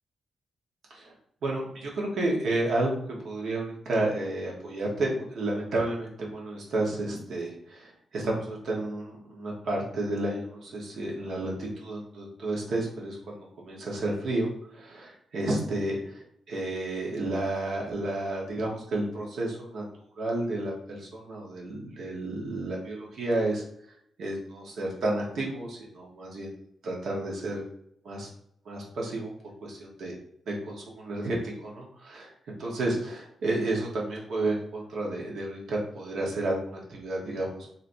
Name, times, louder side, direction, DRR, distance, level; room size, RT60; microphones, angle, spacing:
voice 1, 1.4-19.8 20.2-23.6 24.2-26.5 26.8-27.7 28.0-28.3 28.6-29.3 29.6-30.1 30.5-31.4 31.6-32.3 32.6-37.7, right 2 dB, 70° right, -2 dB, 1.1 m, -31 dB
3.2 x 2.7 x 2.6 m, 0.67 s
cardioid pair, 120°, 0 cm